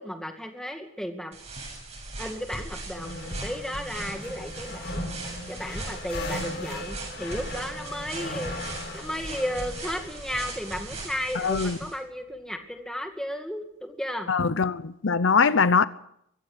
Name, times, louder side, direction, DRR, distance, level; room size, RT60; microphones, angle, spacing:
voice 1, 0.0-1.4 2.2-8.5 8.9-14.3, equal, 5° left, 2.2 m, -34 dB
sound 1, 1.3-11.9, right 2 dB, 30° right, 7.6 m, -39 dB
sound 2, 2.9-11.6, left 1 dB, 55° left, 4.6 m, -38 dB
voice 2, 11.4-11.8 14.3-15.9, left 5 dB, 70° left, 0.8 m, -22 dB
23.5 x 16.0 x 8.0 m
head